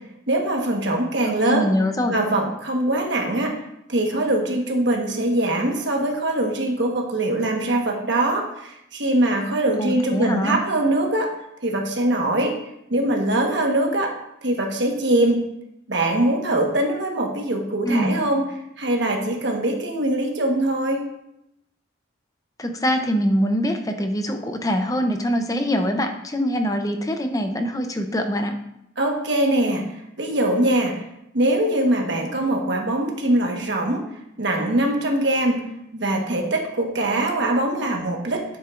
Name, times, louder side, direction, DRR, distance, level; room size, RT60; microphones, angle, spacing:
voice 1, 0.3-1.7 2.1-3.6 3.9-11.3 11.6-12.6 12.9-15.5 15.9-18.5 18.8-21.1 29.0-29.8 30.2-31.0 31.3-34.0 34.4-35.7 35.9-38.4, right 1 dB, 60° right, 1 dB, 1.4 m, -22 dB
voice 2, 1.2-2.1 9.8-10.6 17.9-18.2 22.6-28.6, equal, 20° left, 5 dB, 0.7 m, -23 dB
9.5 x 7.4 x 2.5 m, 0.81 s
head